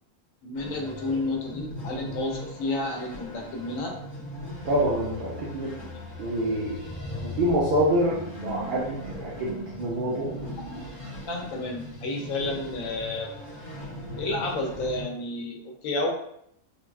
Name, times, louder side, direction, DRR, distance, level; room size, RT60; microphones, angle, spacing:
voice 1, 0.4-4.0 11.2-13.3 14.2-16.1, left 2 dB, 80° left, 1 dB, 1.0 m, -31 dB
sound 1, 0.5-15.0, left 1 dB, 45° left, 1.0 m, -39 dB
voice 2, 4.6-5.7 6.2-6.7 7.4-10.3, right 1 dB, 60° right, -5 dB, 0.5 m, -26 dB
3.4 x 2.2 x 2.3 m, 0.73 s
omnidirectional pair, 1.4 m